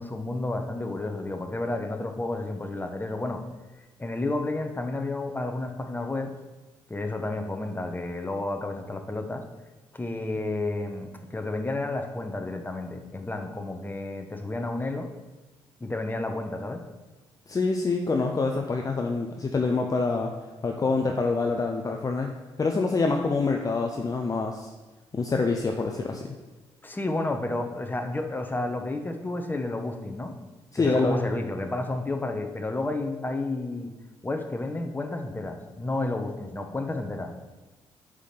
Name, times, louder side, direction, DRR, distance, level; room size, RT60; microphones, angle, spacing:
voice 1, 0.0-3.4 4.0-6.3 6.9-9.4 9.9-15.1 15.8-16.8 26.8-30.3 30.7-33.9 34.2-37.3, left 2 dB, 20° left, 5 dB, 1.0 m, -31 dB
voice 2, 17.5-20.3 20.6-22.3 22.6-24.7 25.1-26.4 30.7-31.4, left 3 dB, 35° left, 2 dB, 0.7 m, -26 dB
5.1 x 4.9 x 5.8 m, 1.2 s
supercardioid pair, 50°, 11 cm